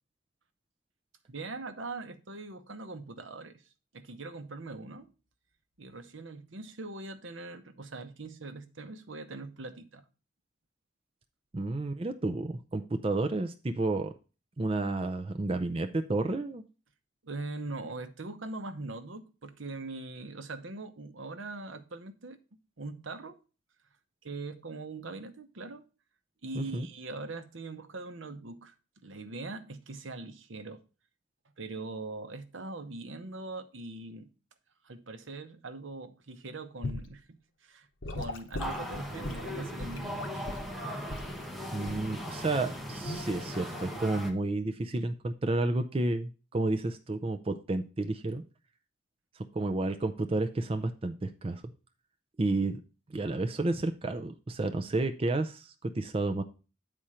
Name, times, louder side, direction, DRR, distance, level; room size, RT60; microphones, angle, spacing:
voice 1, 1.3-3.6 3.9-5.1 5.8-10.0 17.2-22.4 22.8-23.4 24.2-25.8 26.4-28.7 29.0-30.8 31.6-34.3 34.8-40.5, right 3 dB, 75° right, 0.9 m, -42 dB
voice 2, 11.5-14.1 14.6-16.6 26.5-26.9 41.7-48.4 49.5-51.6 52.4-52.8 53.1-56.4, right 2 dB, 30° right, 0.5 m, -31 dB
Gurgling / Sink (filling or washing) / Liquid, 36.8-37.1 38.0-40.7 41.1-41.4 41.9-42.1 43.0-43.3, left 2 dB, 70° left, 1.0 m, -38 dB
sound 1, 38.6-44.3, equal, ahead, 1.1 m, -38 dB
9.0 x 4.3 x 4.9 m
head